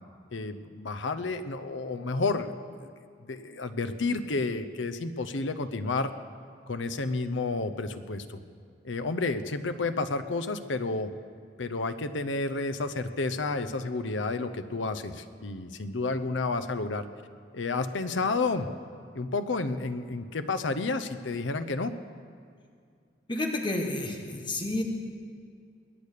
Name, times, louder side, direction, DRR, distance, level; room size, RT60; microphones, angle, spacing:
voice 1, 0.3-2.5 2.8-2.9 3.3-6.1 6.7-8.4 8.8-11.1 11.6-17.0 17.5-18.7 19.1-21.9, left 3 dB, 90° left, 11 dB, 0.8 m, -30 dB
voice 2, 23.3-24.8, left 2 dB, 25° left, 2 dB, 1.5 m, -30 dB
22.0 x 8.4 x 6.7 m, 2.2 s
head